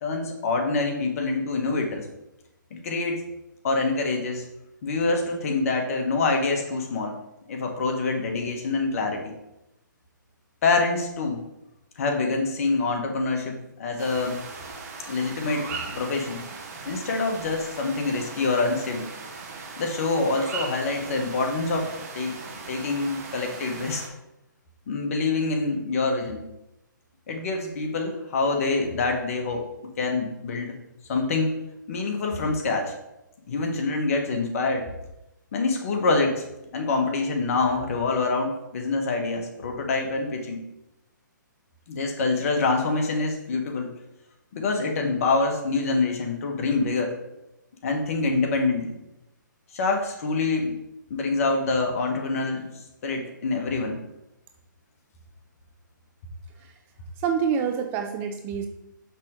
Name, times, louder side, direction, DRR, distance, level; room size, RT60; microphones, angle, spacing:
voice 1, 0.0-2.1 2.7-3.2 3.6-4.4 4.8-7.2 7.5-9.3 10.6-11.4 12.0-14.4 15.1-16.4 16.8-19.1 19.8-21.9 22.1-22.4 22.7-24.0 24.9-26.5 27.3-29.6 30.0-30.7 31.1-31.6 31.9-32.9 33.5-34.9 35.5-36.4 36.7-40.6 41.9-43.9 44.5-47.1 47.8-48.9 49.7-50.8 51.1-52.7 53.0-54.0, left 3 dB, 45° left, 3 dB, 1.3 m, -26 dB
sound 1, 14.0-24.1, right 4 dB, 45° right, 1.2 m, -38 dB
voice 2, 57.2-58.7, right 7 dB, 20° right, 5 dB, 0.4 m, -26 dB
6.1 x 5.7 x 3.7 m, 0.91 s
hypercardioid pair, 145°, 11 cm